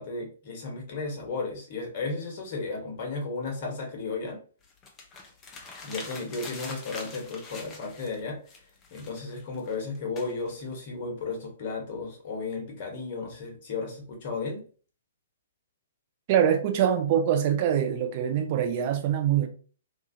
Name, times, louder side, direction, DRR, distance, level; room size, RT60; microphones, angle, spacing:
voice 1, 0.0-4.4 5.6-8.4 8.9-14.6, left 3 dB, 45° left, 1.0 m, -34 dB
sound 1, 4.6-8.2 8.5-10.7, left 3 dB, 20° left, 0.6 m, -44 dB
voice 2, 16.3-19.5, right 9 dB, 40° right, 0.5 m, -24 dB
2.7 x 2.4 x 2.7 m
figure-of-eight pair, 120°, 0 cm